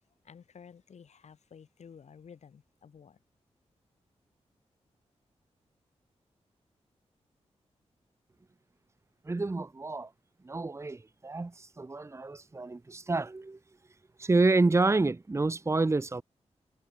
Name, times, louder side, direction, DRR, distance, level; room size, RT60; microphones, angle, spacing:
voice 1, 0.2-3.2, left 7 dB, 75° left, 6.8 m, -52 dB
voice 2, 9.3-10.1 10.4-13.6 14.2-16.2, right 3 dB, 25° right, 1.1 m, -28 dB
wide cardioid pair, 90°, 12 cm